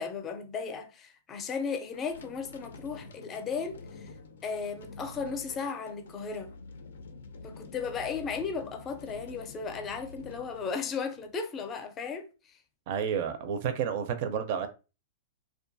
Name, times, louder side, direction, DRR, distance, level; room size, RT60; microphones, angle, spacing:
voice 1, 0.0-4.1 4.4-6.5 7.4-12.5, left 5 dB, 25° left, 0.5 m, -35 dB
sound 1, 1.9-11.4, left 3 dB, 85° left, 0.4 m, -48 dB
voice 2, 12.9-14.7, right 7 dB, 50° right, 0.4 m, -30 dB
2.6 x 2.3 x 2.5 m
hypercardioid pair, 135°, 0 cm